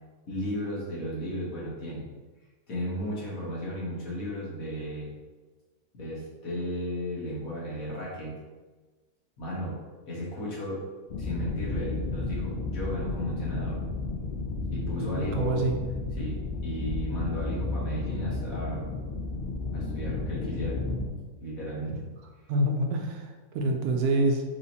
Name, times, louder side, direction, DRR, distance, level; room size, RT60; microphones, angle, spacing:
voice 1, 0.3-2.1 2.7-5.1 5.9-8.4 9.4-9.8 10.0-10.8 11.2-13.8 14.7-15.7 16.2-18.9 19.3-19.4 19.7-20.8 21.4-22.0, equal, 65° left, -5 dB, 1.6 m, -34 dB
sound 1, 11.1-21.1, left 3 dB, 85° left, 0.4 m, -32 dB
voice 2, 15.1-15.7 22.5-24.4, right 2 dB, 75° right, 2 dB, 1.1 m, -26 dB
4.9 x 3.0 x 2.7 m, 1.3 s
omnidirectional pair, 1.6 m